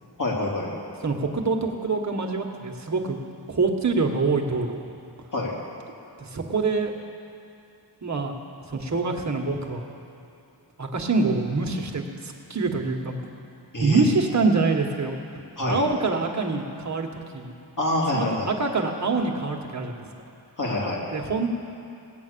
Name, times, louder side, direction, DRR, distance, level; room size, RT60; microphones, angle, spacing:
voice 1, 0.2-0.7 5.3-5.5 13.7-14.0 15.6-15.8 17.8-18.5 20.6-21.0, left 1 dB, 45° left, -3 dB, 2.9 m, -26 dB
voice 2, 1.0-3.2 3.5-4.9 6.2-6.9 8.0-8.3 8.7-9.9 10.8-13.2 13.8-15.1 15.7-17.5 18.1-20.0 21.1-21.5, right 3 dB, 40° right, 2 dB, 1.5 m, -25 dB
18.0 x 8.3 x 6.9 m, 2.7 s
wide cardioid pair, 80°, 41 cm